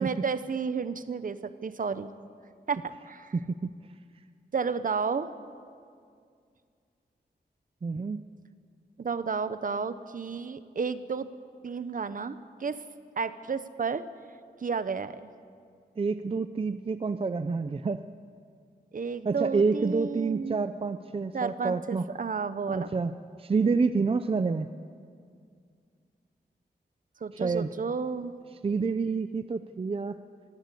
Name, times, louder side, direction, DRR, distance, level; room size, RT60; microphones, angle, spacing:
voice 1, 0.0-2.1 2.7-3.3 4.5-5.3 9.0-11.3 11.6-12.8 13.2-14.0 14.6-15.1 18.9-20.6 21.3-22.9 27.2-28.3, right 5 dB, 50° right, 13 dB, 0.9 m, -32 dB
voice 2, 3.3-3.7 7.8-8.2 16.0-18.0 19.2-22.1 22.7-23.1 23.4-24.7 27.3-27.7 28.6-30.2, right 4 dB, 30° right, 10 dB, 0.5 m, -28 dB
24.0 x 15.5 x 8.4 m, 2.2 s
wide cardioid pair, 155°, 18 cm